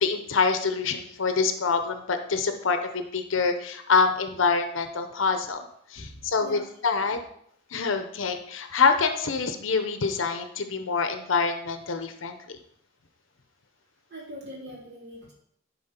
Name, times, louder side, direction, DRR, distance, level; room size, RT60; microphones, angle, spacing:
voice 1, 0.0-5.7 5.9-7.2 7.7-12.6, left 4 dB, 75° left, 7 dB, 0.7 m, -26 dB
voice 2, 6.0-6.6 7.0-7.2 14.1-15.3, equal, 55° right, -4 dB, 2.7 m, -42 dB
10.5 x 4.2 x 4.3 m, 0.70 s
head